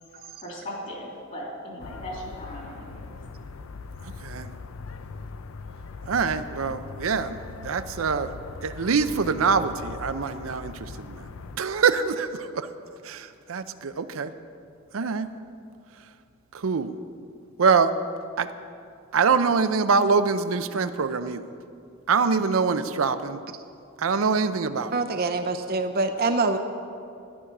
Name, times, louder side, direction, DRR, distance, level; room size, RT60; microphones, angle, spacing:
voice 1, 0.1-3.1, equal, 40° left, -3 dB, 3.2 m, -38 dB
sound 1, 1.8-11.6, left 4 dB, 85° left, 0.5 m, -40 dB
voice 2, 6.1-8.3 8.6-11.2 11.6-12.7 13.0-14.3 14.9-15.3 16.5-16.9 17.6-17.9 18.4-18.5 19.1-21.4 22.1-23.4 24.0-24.9, right 5 dB, 85° right, 11 dB, 0.6 m, -24 dB
voice 3, 24.9-26.6, right 3 dB, 50° right, 6 dB, 0.7 m, -25 dB
12.5 x 10.0 x 6.0 m, 2.5 s
head